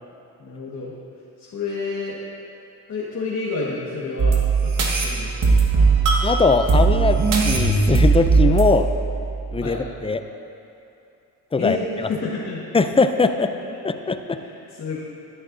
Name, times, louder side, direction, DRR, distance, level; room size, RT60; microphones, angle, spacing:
voice 1, 0.4-0.9 1.4-2.2 2.9-4.4 4.6-5.9 9.6-9.8 11.6-12.6 14.3-15.0, left 4 dB, 45° left, -7 dB, 1.6 m, -29 dB
sound 1, 4.2-9.8, right 4 dB, 60° right, 1.5 m, -19 dB
voice 2, 6.2-8.9 9.5-10.2 11.5-12.1 12.7-13.5 13.8-14.4, left 4 dB, 15° left, 9 dB, 0.4 m, -21 dB
13.5 x 9.7 x 2.7 m, 2.7 s
cardioid pair, 85°, 36 cm